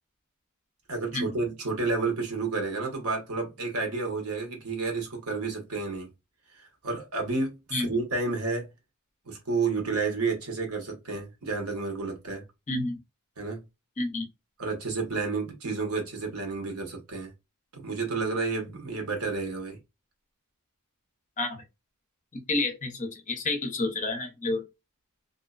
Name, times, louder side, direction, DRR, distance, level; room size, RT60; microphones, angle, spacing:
voice 1, 0.9-6.1 6.5-8.7 9.3-12.4 13.4-13.6 14.6-17.3 17.7-19.8, right 4 dB, 70° right, 1.1 m, -31 dB
voice 2, 12.7-13.0 14.0-14.3 21.4-21.6 22.3-24.6, left 2 dB, 35° left, 0.7 m, -29 dB
2.6 x 2.1 x 2.4 m
head